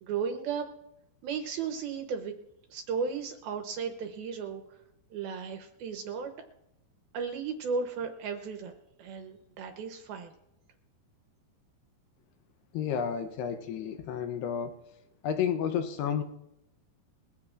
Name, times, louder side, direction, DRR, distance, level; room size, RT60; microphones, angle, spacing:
voice 1, 0.0-0.7 1.2-2.3 2.7-4.6 5.1-6.3 7.1-8.7 9.0-10.3, right 5 dB, 70° right, 6 dB, 2.5 m, -35 dB
voice 2, 12.7-14.8 15.2-16.2, left 8 dB, 75° left, 7 dB, 2.7 m, -31 dB
22.0 x 16.0 x 2.5 m, 0.86 s
omnidirectional pair, 5.2 m